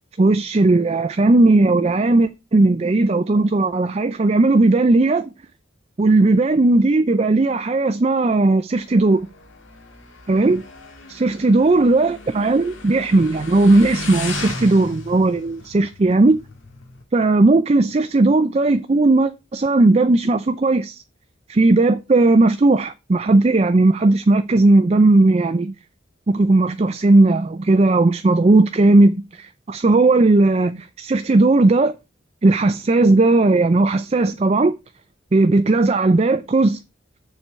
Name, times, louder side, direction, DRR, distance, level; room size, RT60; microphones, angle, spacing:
voice 1, 0.2-5.3 6.0-9.2 10.3-10.6 11.1-16.4 17.1-21.0 21.5-25.7 26.3-31.9 32.4-34.7 35.3-36.8, right 2 dB, 35° right, 0.4 m, -16 dB
Motorcycle, 8.7-17.0, left 2 dB, 85° left, 1.8 m, -35 dB
7.1 x 4.4 x 6.6 m
head